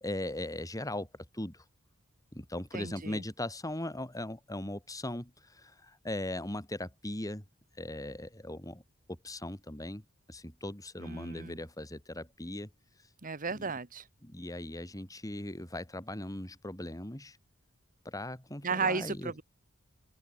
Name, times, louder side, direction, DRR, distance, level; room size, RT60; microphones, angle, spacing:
voice 1, 0.0-1.1 1.3-1.6 2.3-7.4 7.8-8.8 9.1-12.7 13.5-13.7 14.2-17.4 18.1-19.3, left 1 dB, 15° left, 3.4 m, -39 dB
voice 2, 2.7-3.2 11.0-11.6 13.2-14.1 18.6-19.4, right 5 dB, 40° right, 1.5 m, -34 dB
head